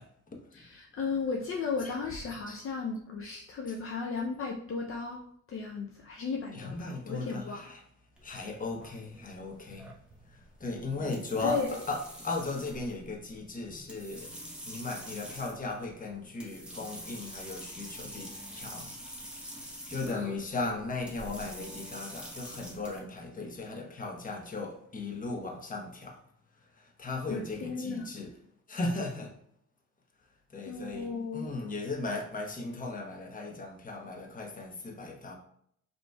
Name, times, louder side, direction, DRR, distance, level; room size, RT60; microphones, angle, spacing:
voice 1, 0.0-0.5 1.8-1.9 2.5-2.6 3.7-3.8 6.5-7.9 8.2-9.9 10.3-14.3 14.7-18.9 19.3-19.6 19.9-26.2 26.8-28.3 28.7-29.3 30.5-35.4, left 3 dB, 25° left, 0.9 m, -37 dB
voice 2, 0.5-5.2 5.5-7.6 11.4-11.8 20.0-20.3 27.3-28.1 30.7-31.5, left 4 dB, 45° left, 0.5 m, -35 dB
sound 1, 8.2-23.0, equal, 5° right, 1.0 m, -46 dB
5.2 x 3.0 x 2.2 m
cardioid pair, 90°, 30 cm